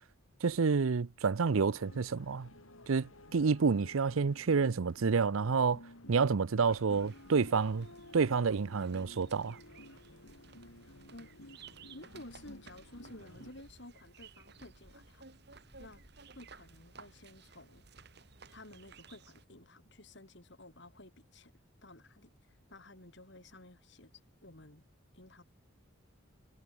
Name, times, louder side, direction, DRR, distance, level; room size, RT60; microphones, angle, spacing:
voice 1, 0.4-2.5 2.9-5.8 6.1-7.9 8.1-9.6, right 5 dB, 80° right, 0.6 m, -29 dB
sound 1, 1.5-13.5, left 1 dB, 80° left, 6.2 m, -54 dB
sound 2, 6.9-19.5, right 4 dB, 50° right, 2.5 m, -56 dB
voice 2, 11.9-15.2 15.8-16.0 16.4-17.8 18.5-21.5 21.8-22.3 22.7-24.1 24.4-24.8 25.1-25.4, left 1 dB, 55° left, 3.6 m, -53 dB
head